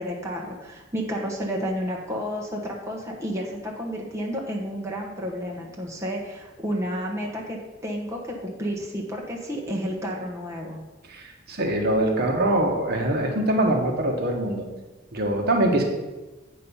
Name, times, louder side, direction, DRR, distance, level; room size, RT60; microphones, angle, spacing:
voice 1, 0.0-10.8, equal, 15° right, -2 dB, 1.1 m, -31 dB
voice 2, 11.1-14.6 15.1-15.8, right 1 dB, 55° right, 2 dB, 1.2 m, -23 dB
8.4 x 5.3 x 5.5 m, 1.1 s
head